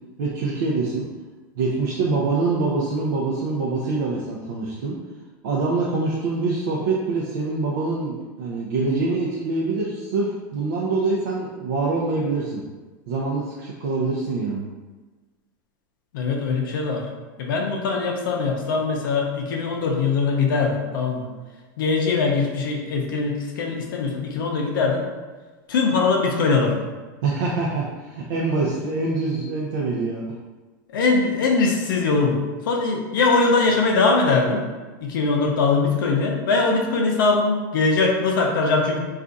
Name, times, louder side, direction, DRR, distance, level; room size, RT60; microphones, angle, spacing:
voice 1, 0.2-1.1 1.6-4.9 5.4-12.6 13.1-14.7 27.2-30.2, right 3 dB, 70° right, -4 dB, 0.5 m, -25 dB
voice 2, 16.1-17.0 17.4-21.3 21.8-25.0 25.7-26.8 30.9-34.7 35.0-39.0, left 4 dB, 85° left, 0 dB, 0.5 m, -21 dB
2.4 x 2.4 x 3.9 m, 1.3 s
supercardioid pair, 160°, 11 cm